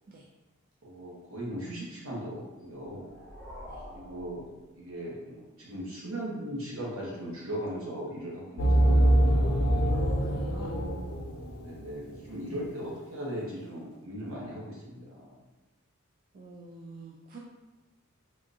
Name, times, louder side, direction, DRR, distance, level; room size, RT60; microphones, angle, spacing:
voice 1, 0.8-3.1 3.9-4.4 4.8-9.6 11.6-15.4, equal, 70° right, -4 dB, 1.0 m, -38 dB
sound 1, 2.6-5.3, equal, 5° left, 0.9 m, -47 dB
sound 2, 8.6-12.0, right 1 dB, 80° left, 0.5 m, -24 dB
voice 2, 9.9-10.8 16.3-17.4, right 2 dB, 40° right, -2 dB, 0.3 m, -48 dB
3.6 x 2.4 x 2.6 m, 1.1 s
head